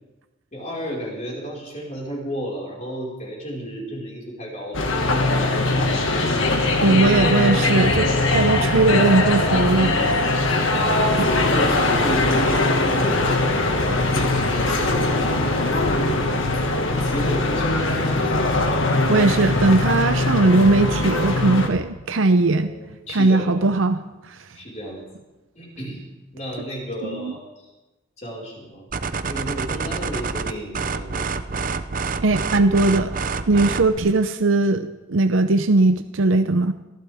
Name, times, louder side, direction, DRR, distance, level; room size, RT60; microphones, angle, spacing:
voice 1, 0.5-6.1 10.4-13.3 13.9-16.3 16.8-18.2 22.5-23.7 24.5-25.0 25.5-26.0 26.3-27.7 28.2-28.8 29.2-31.3, equal, 35° left, -4 dB, 5.0 m, -33 dB
sound 1, 4.7-21.7, left 2 dB, 80° left, 1.9 m, -21 dB
voice 2, 6.8-10.0 11.2-11.3 19.1-22.7 23.1-24.0 24.3-24.4 27.1-27.3 32.2-33.1 33.5-36.7, right 2 dB, 80° right, 9 dB, 0.7 m, -19 dB
sound 2, 28.9-34.0, right 4 dB, 45° right, 0.6 m, -27 dB
23.5 x 15.0 x 3.6 m, 1.1 s
head